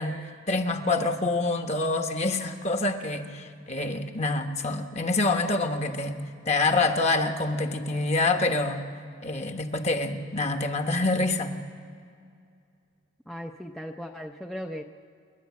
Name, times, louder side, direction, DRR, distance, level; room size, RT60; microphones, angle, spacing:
voice 1, 0.0-6.2 6.5-8.9 9.2-11.5, left 2 dB, 35° left, 6 dB, 1.2 m, -26 dB
voice 2, 13.3-14.8, equal, ahead, 3 dB, 0.6 m, -37 dB
27.5 x 11.0 x 8.5 m, 2.3 s
head